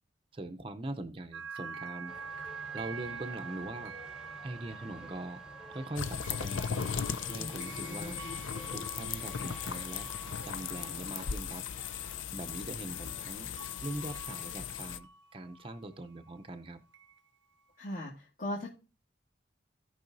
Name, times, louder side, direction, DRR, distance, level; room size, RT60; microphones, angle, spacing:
voice 1, 0.3-2.1 2.7-3.9 4.4-5.4 5.7-6.9 7.3-8.2 8.7-10.1 10.4-11.6 12.3-13.5 13.8-16.8, right 2 dB, 25° right, 6 dB, 0.6 m, -42 dB
sound 1, 1.3-16.4 16.9-17.3, right 5 dB, 70° right, 0.5 m, -47 dB
sound 2, 2.1-11.3, equal, 5° right, 0.9 m, -52 dB
sound 3, 5.9-15.0, left 7 dB, 75° left, 0.6 m, -37 dB
voice 2, 7.4-8.4 17.8-18.7, left 1 dB, 45° left, -4 dB, 1.8 m, -40 dB
16.5 x 5.6 x 2.6 m, 0.34 s
head